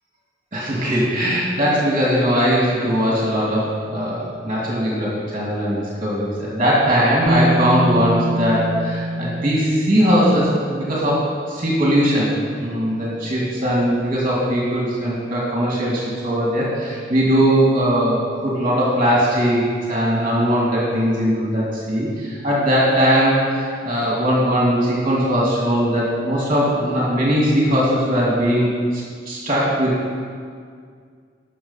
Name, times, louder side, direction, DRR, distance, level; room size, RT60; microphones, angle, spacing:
voice 1, 0.5-12.3 12.6-30.1, equal, 35° right, -5 dB, 2.1 m, -20 dB
Bass guitar, 7.3-11.2 12.3-12.4, right 1 dB, 80° right, 0.7 m, -25 dB
13.0 x 5.9 x 5.6 m, 2.1 s
head